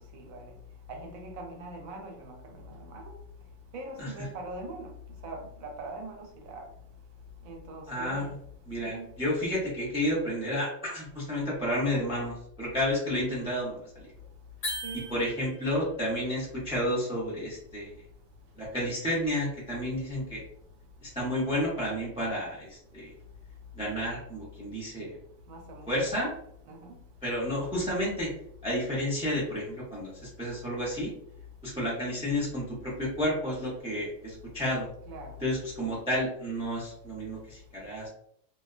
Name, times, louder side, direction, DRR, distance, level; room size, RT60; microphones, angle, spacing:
voice 1, 0.1-0.4 0.9-3.1 3.7-4.9 5.2-6.6 7.5-8.3 8.8-9.1 14.8-15.1 25.5-26.2 26.7-26.9 35.1-35.3, right 2 dB, 85° right, 2 dB, 1.0 m, -42 dB
voice 2, 7.9-8.3 8.6-14.1 15.1-17.9 18.6-20.4 21.0-23.1 23.7-25.2 25.9-26.3 27.2-28.3 28.6-31.1 31.6-34.9 35.4-38.1, equal, 5° right, -7 dB, 0.5 m, -31 dB
sound 1, 14.6-15.8, left 1 dB, 85° left, 1.2 m, -37 dB
2.5 x 2.1 x 2.4 m, 0.70 s
omnidirectional pair, 1.4 m